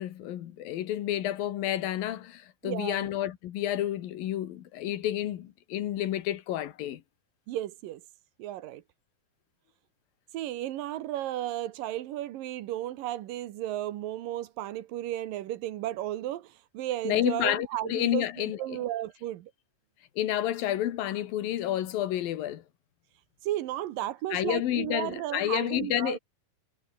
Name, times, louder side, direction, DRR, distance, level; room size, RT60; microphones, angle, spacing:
voice 1, 0.0-7.0 17.0-18.8 20.2-22.6 24.3-26.2, left 12 dB, 80° left, 3.2 m, -30 dB
voice 2, 2.6-3.1 7.5-8.0 8.4-8.8 10.3-18.3 18.6-19.5 23.4-26.2, right 13 dB, 75° right, 2.8 m, -34 dB
omnidirectional pair, 4.0 m